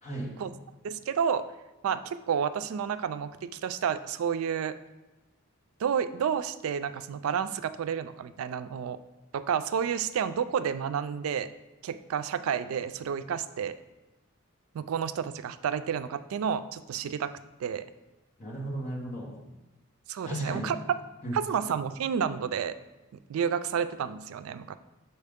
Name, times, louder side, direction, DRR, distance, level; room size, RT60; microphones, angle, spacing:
voice 1, 0.0-0.3 18.4-19.3 20.2-20.8 21.2-21.4, right 1 dB, 35° left, -3 dB, 1.2 m, -35 dB
voice 2, 0.8-1.5 1.8-4.7 5.8-9.0 9.3-11.5 11.8-13.8 14.7-17.3 17.6-17.8 20.1-20.8 21.3-22.7 23.3-24.8, right 7 dB, 85° right, 12 dB, 0.3 m, -30 dB
6.5 x 4.4 x 3.5 m, 1.0 s
head